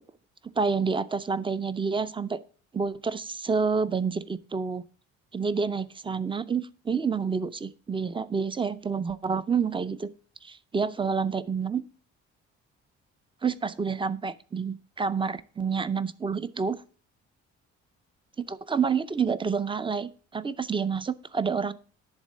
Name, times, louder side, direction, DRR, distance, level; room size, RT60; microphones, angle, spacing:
voice 1, 0.6-2.4 2.7-4.8 5.3-10.1 10.4-11.8 13.4-16.8 18.4-21.7, right 5 dB, 15° right, 15 dB, 0.5 m, -28 dB
10.5 x 3.6 x 7.4 m, 0.41 s
cardioid pair, 90°, 30 cm